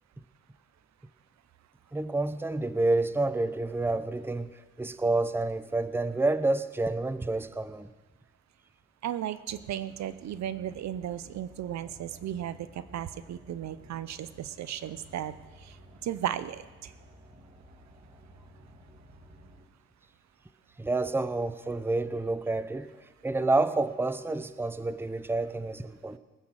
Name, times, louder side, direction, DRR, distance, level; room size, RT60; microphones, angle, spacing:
voice 1, 1.9-4.5 4.8-7.9 20.8-22.9 23.2-26.2, right 2 dB, 5° right, 13 dB, 0.7 m, -28 dB
voice 2, 9.0-12.5 12.9-15.3 16.1-16.6, right 11 dB, 65° right, 14 dB, 0.7 m, -35 dB
sound 1, 9.5-19.6, right 1 dB, 25° right, 2.6 m, -54 dB
20.0 x 9.6 x 6.3 m, 1.2 s
cardioid pair, 90°, 30 cm